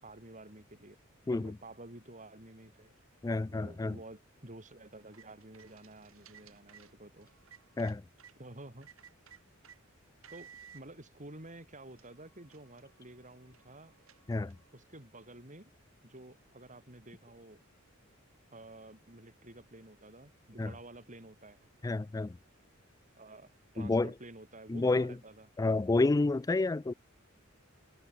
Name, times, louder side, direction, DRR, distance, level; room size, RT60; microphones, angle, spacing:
voice 1, 0.0-1.0 1.3-2.9 3.5-7.3 8.4-8.9 10.3-13.9 14.7-15.7 16.0-17.6 18.5-21.6 23.2-25.5, right 2 dB, 40° right, 7.0 m, -51 dB
voice 2, 3.2-4.0 7.8-8.0 14.3-14.5 20.6-20.7 21.8-22.4 23.8-24.1 24.7-25.1 25.6-26.9, left 3 dB, 15° left, 0.3 m, -29 dB
sound 1, 4.9-8.4 8.8-9.8 10.2-10.8 11.5-11.6 11.9-14.7, right 8 dB, 90° right, 7.8 m, -58 dB
head